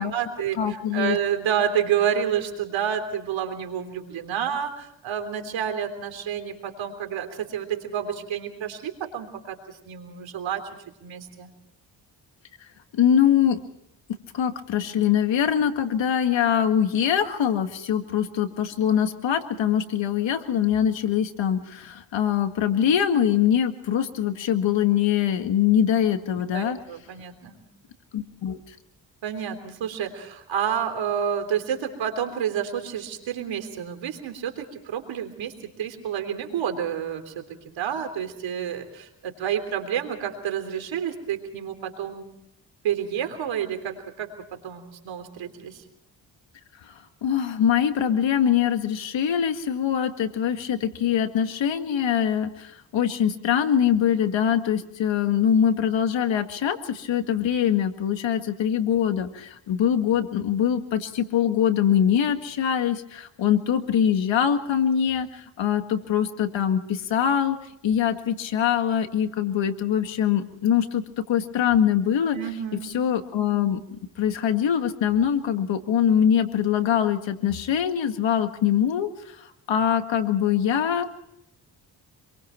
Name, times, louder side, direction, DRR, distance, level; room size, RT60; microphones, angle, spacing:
voice 1, 0.0-10.6 11.0-11.5 26.5-27.6 29.2-42.3 42.8-44.3 44.6-45.8 72.3-72.9, right 8 dB, 90° right, 6 dB, 3.4 m, -29 dB
voice 2, 0.6-1.2 12.9-13.6 14.3-26.8 28.1-28.6 46.9-47.0 47.2-67.6 67.8-72.4 72.8-81.1, left 9 dB, 80° left, 7 dB, 2.0 m, -23 dB
27.0 x 22.5 x 4.5 m, 0.78 s
cardioid pair, 70°, 44 cm